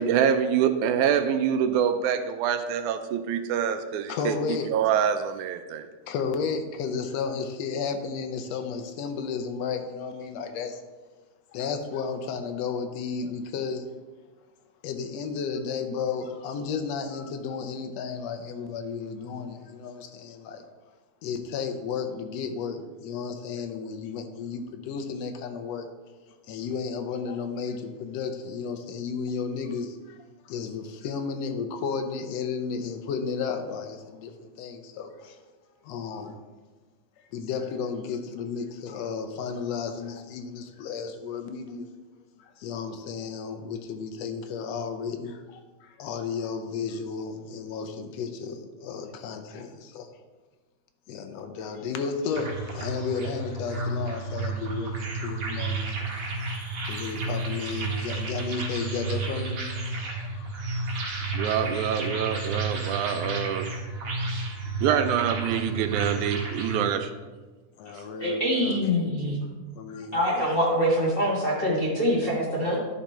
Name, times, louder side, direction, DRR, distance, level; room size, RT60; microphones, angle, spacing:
voice 1, 0.0-4.4 4.7-5.9 61.3-63.7 64.8-67.1, right 8 dB, 80° right, 9 dB, 1.9 m, -25 dB
voice 2, 4.1-4.7 6.1-10.8 11.5-13.8 14.8-20.7 21.2-25.9 26.5-30.2 30.4-35.4 35.8-36.3 37.3-41.9 42.4-50.1 51.1-56.1 56.8-62.1 67.8-68.8 69.8-70.5 70.8-70.9, left 5 dB, 75° left, 6 dB, 1.6 m, -33 dB
sound 1, 52.3-66.8, right 3 dB, 60° right, 2.7 m, -32 dB
voice 3, 68.2-69.4 70.1-72.8, equal, 45° left, -6 dB, 0.7 m, -24 dB
11.5 x 5.0 x 4.3 m, 1.3 s
omnidirectional pair, 3.6 m